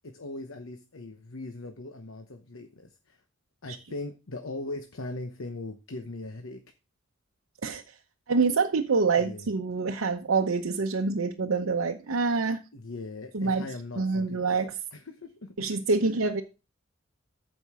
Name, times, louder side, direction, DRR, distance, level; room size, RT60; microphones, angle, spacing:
voice 1, 0.0-3.2 3.6-6.6 9.2-9.5 12.7-14.6 14.9-15.7 16.0-16.1, left 2 dB, 75° left, 0.9 m, -40 dB
voice 2, 8.3-12.6 13.3-13.6 14.0-14.8 15.6-16.4, right 4 dB, 85° right, 0.8 m, -26 dB
14.0 x 5.3 x 3.6 m
head